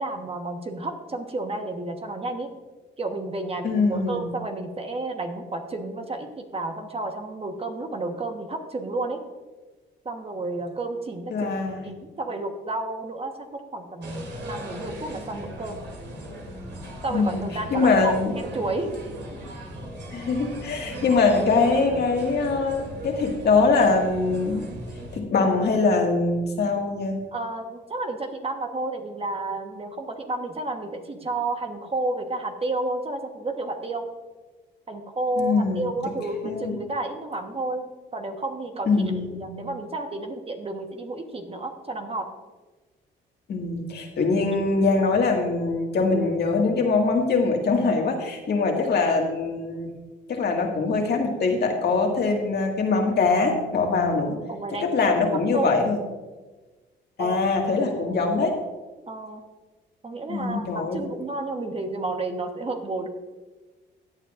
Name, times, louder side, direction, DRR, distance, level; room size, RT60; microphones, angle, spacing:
voice 1, 0.0-2.5 3.0-9.2 10.0-11.5 11.8-15.8 17.0-18.9 27.3-34.1 34.9-37.9 38.1-38.9 39.2-42.3 54.5-55.8 57.2-57.4 59.1-59.4 60.0-63.1, right 2 dB, 30° right, 5 dB, 1.2 m, -31 dB
voice 2, 3.6-4.2 11.3-11.8 17.1-17.4 17.7-18.3 20.1-24.6 25.1-27.2 35.4-35.9 36.4-36.8 38.9-39.5 43.5-49.9 50.3-54.4 54.8-56.0 57.2-58.6 60.3-61.0, left 3 dB, 55° left, 1 dB, 1.9 m, -23 dB
sound 1, 14.0-25.2, right 1 dB, 65° right, 2.8 m, -37 dB
16.0 x 8.6 x 2.5 m, 1.3 s
cardioid pair, 90°, 20 cm